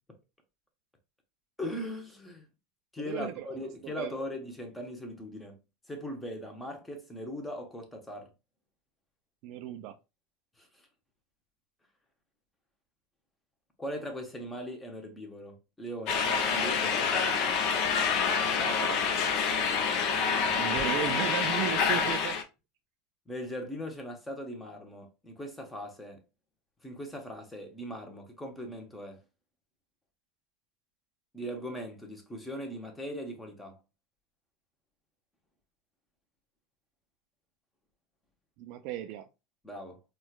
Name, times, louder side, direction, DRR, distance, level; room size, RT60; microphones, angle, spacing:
voice 1, 1.6-2.5 2.9-5.6 5.9-8.3 10.6-10.9 13.8-17.3 19.7-20.6 23.3-26.2 26.8-29.2 31.3-33.8 39.6-40.0, equal, 10° left, 0.8 m, -40 dB
voice 2, 3.0-3.7 4.0-4.1 9.4-9.9 18.6-19.4 20.6-22.4 38.6-39.2, right 11 dB, 55° right, 0.3 m, -36 dB
sound 1, 16.1-22.4, left 6 dB, 50° left, 0.6 m, -27 dB
4.3 x 2.2 x 2.3 m
supercardioid pair, 140°, 0 cm